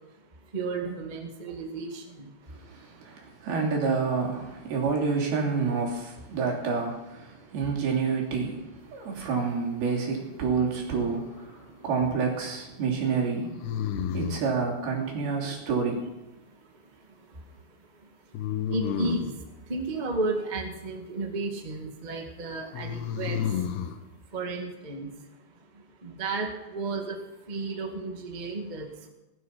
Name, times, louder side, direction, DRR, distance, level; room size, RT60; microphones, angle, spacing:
voice 1, 0.5-2.3 18.7-19.3 19.7-23.4 24.3-25.1 26.0-27.2 27.5-29.1, right 3 dB, 40° right, 2 dB, 0.6 m, -33 dB
voice 2, 2.5-13.6 14.1-16.1, right 5 dB, 70° right, -2 dB, 4.9 m, -28 dB
sound 1, 10.9-11.6 13.6-14.6 18.3-19.4 22.7-24.0, left 9 dB, 85° left, 3.2 m, -31 dB
18.0 x 12.0 x 5.9 m, 1.0 s
omnidirectional pair, 4.7 m